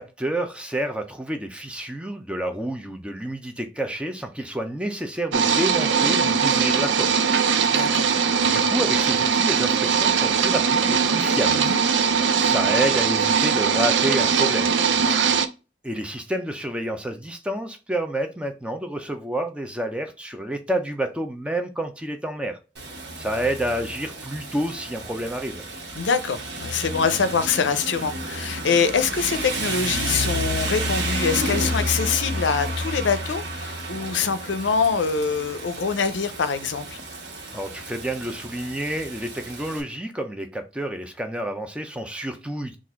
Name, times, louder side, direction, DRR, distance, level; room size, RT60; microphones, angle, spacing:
voice 1, 0.0-7.1 8.4-11.6 12.3-14.7 15.8-22.6 23.2-25.6 37.5-42.8, right 1 dB, 5° right, 0.5 m, -29 dB
sound 1, 5.3-15.5, right 6 dB, 80° right, 0.5 m, -21 dB
voice 2, 7.7-8.2 11.5-11.8 15.0-15.2 26.0-37.0, left 5 dB, 80° left, 0.5 m, -24 dB
Rain, 22.8-39.8, right 1 dB, 65° right, 1.3 m, -31 dB
4.0 x 2.4 x 4.4 m
head